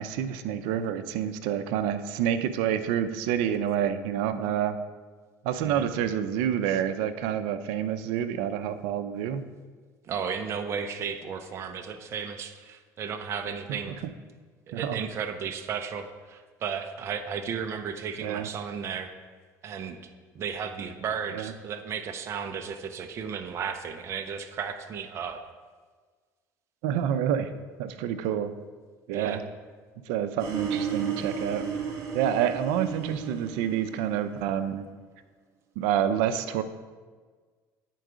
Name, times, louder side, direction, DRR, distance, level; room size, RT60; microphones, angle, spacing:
voice 1, 0.0-4.8 5.4-9.4 14.7-15.0 18.2-18.5 21.3-21.5 26.8-27.5 27.8-28.5 29.1-29.4 30.1-31.6 32.1-34.8 35.8-36.6, right 9 dB, 90° right, 11 dB, 0.5 m, -28 dB
voice 2, 10.0-14.0 14.7-19.1 19.6-20.0 20.3-25.4 29.1-29.4, right 7 dB, 40° right, 6 dB, 0.6 m, -34 dB
sound 1, 30.4-34.5, right 7 dB, 60° right, 2.0 m, -33 dB
9.1 x 4.6 x 4.9 m, 1.5 s
cardioid pair, 125°, 7 cm